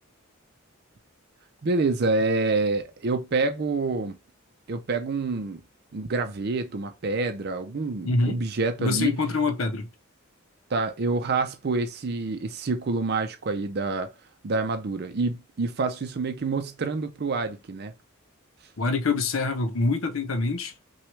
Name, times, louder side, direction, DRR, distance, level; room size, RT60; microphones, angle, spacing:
voice 1, 1.6-4.2 4.7-5.6 5.9-9.1 10.7-14.1 14.4-17.9, right 3 dB, 50° right, 0.5 m, -27 dB
voice 2, 8.0-8.4 8.8-9.9 18.8-20.7, left 3 dB, 75° left, 0.7 m, -25 dB
6.0 x 2.3 x 3.1 m
head